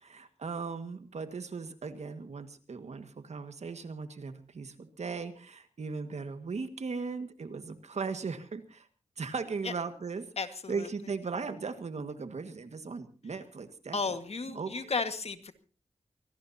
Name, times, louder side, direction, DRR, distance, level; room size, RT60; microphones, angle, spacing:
voice 1, 0.0-8.9 9.2-10.3 10.7-14.2 14.5-14.9, right 4 dB, 75° right, 9 dB, 1.8 m, -38 dB
voice 2, 10.4-10.9 13.9-15.5, left 4 dB, 60° left, 9 dB, 1.8 m, -34 dB
24.0 x 18.0 x 2.8 m, 0.38 s
wide cardioid pair, 75°, 12 cm